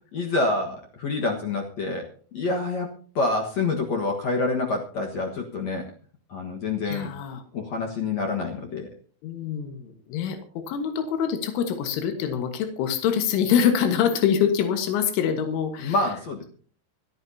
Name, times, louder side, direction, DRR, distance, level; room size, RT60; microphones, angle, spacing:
voice 1, 0.1-2.1 2.3-5.9 6.3-7.1 7.5-8.9 15.8-16.4, left 3 dB, 65° left, 1 dB, 1.7 m, -27 dB
voice 2, 6.9-7.4 9.2-16.0, left 8 dB, 90° left, 6 dB, 3.9 m, -25 dB
26.0 x 10.5 x 2.8 m, 0.43 s
omnidirectional pair, 5.4 m